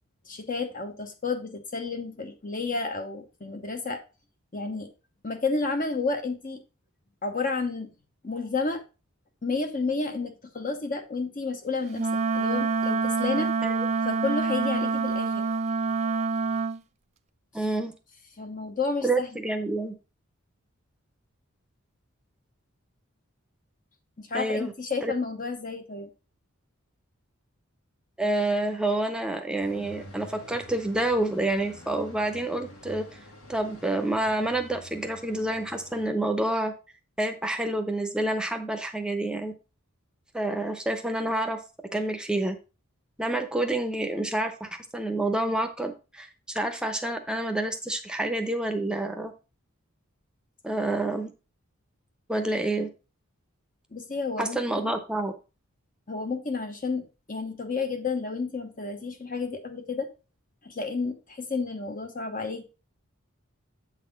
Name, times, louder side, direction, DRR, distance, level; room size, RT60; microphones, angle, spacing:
voice 1, 0.3-4.0 4.5-4.9 5.2-6.6 7.2-7.9 8.2-8.8 9.4-13.5 14.0-15.4 18.4-19.3 24.2-26.1 53.9-54.9 56.1-60.1 60.6-62.6, left 4 dB, 40° left, 5 dB, 0.9 m, -31 dB
Wind instrument woodwind instrument, 11.9-16.8, right 4 dB, 30° right, 0.4 m, -26 dB
voice 2, 17.5-17.9 19.0-19.9 24.3-24.7 25.0-25.1 28.2-33.2 33.5-36.7 37.2-39.5 40.3-41.6 41.9-42.6 43.2-49.3 50.6-51.3 52.3-52.9 54.4-55.3, right 1 dB, 5° right, 6 dB, 0.8 m, -28 dB
sound 1, 29.6-36.1, equal, 90° left, 2.0 m, -48 dB
7.9 x 4.1 x 5.1 m, 0.31 s
head